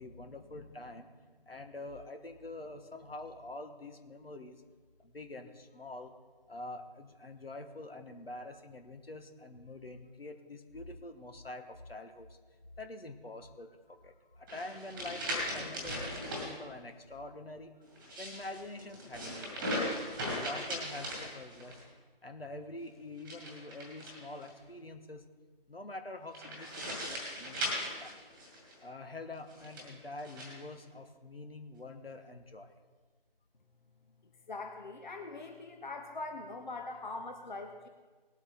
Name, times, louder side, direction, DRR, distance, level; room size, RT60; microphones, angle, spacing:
voice 1, 0.0-4.6 5.0-6.1 6.5-12.4 12.8-17.7 18.2-19.9 20.3-21.8 22.2-25.2 25.7-28.2 28.8-32.7, left 2 dB, 75° left, 6 dB, 1.5 m, -46 dB
sound 1, 14.5-16.5 17.9-21.8 23.2-24.5 26.3-28.8 29.5-30.5, equal, 10° right, 1.9 m, -38 dB
voice 2, 34.5-37.9, left 3 dB, 50° left, 5 dB, 1.0 m, -42 dB
19.0 x 8.3 x 3.6 m, 1.4 s
figure-of-eight pair, 160°, 29 cm